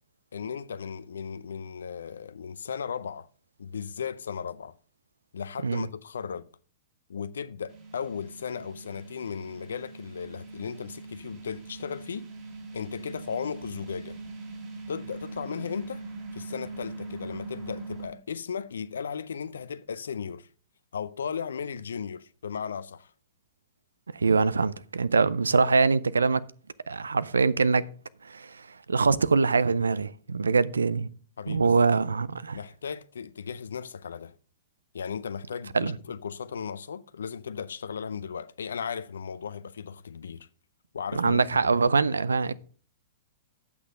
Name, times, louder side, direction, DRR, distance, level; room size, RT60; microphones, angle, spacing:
voice 1, 0.3-3.3 3.6-4.8 5.3-6.5 7.1-12.3 12.7-14.2 14.9-16.1 16.3-20.5 20.9-23.1 31.4-32.0 32.5-34.3 34.9-40.5 40.9-41.4, left 6 dB, 75° left, 0.4 m, -36 dB
sound 1, 7.7-18.1, right 3 dB, 35° right, 3.7 m, -42 dB
voice 2, 24.1-26.4 26.9-27.9 28.2-31.1 31.5-32.6 35.7-35.9 41.1-42.6, right 4 dB, 85° right, 0.5 m, -24 dB
8.4 x 6.1 x 5.3 m
hypercardioid pair, 110°, 0 cm